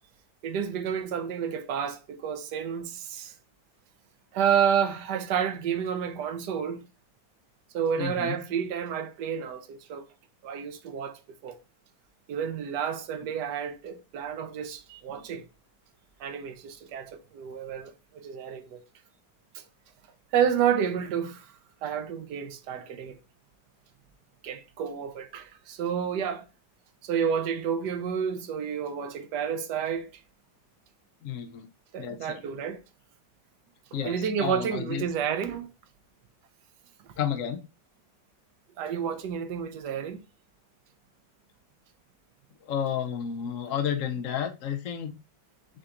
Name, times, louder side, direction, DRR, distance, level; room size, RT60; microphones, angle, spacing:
voice 1, 0.4-3.3 4.3-6.8 7.7-10.0 10.4-11.6 12.3-15.4 16.2-18.8 19.5-19.6 20.3-21.5 21.8-23.2 24.4-26.5 27.0-30.1 31.9-32.8 34.0-35.7 38.8-40.2, right 8 dB, 75° right, 1.2 m, -30 dB
voice 2, 8.0-8.4 15.1-15.4 31.2-31.7 32.0-32.4 33.9-35.1 37.2-37.6 42.6-45.1, left 8 dB, 65° left, 0.8 m, -32 dB
6.5 x 2.9 x 2.4 m
omnidirectional pair, 1.9 m